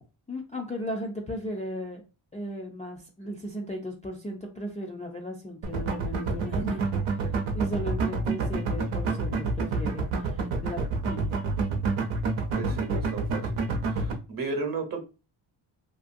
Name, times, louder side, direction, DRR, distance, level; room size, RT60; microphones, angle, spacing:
voice 1, 0.3-2.0 2.3-6.9 7.1-7.3 7.5-11.5 12.6-12.8, left 1 dB, 15° left, -2 dB, 0.3 m, -36 dB
sound 1, 5.6-14.1, right 3 dB, 90° right, 0.7 m, -28 dB
voice 2, 12.6-13.6 13.9-15.0, right 4 dB, 45° right, 4 dB, 0.8 m, -34 dB
2.6 x 2.5 x 2.5 m, 0.31 s
wide cardioid pair, 130°, 48 cm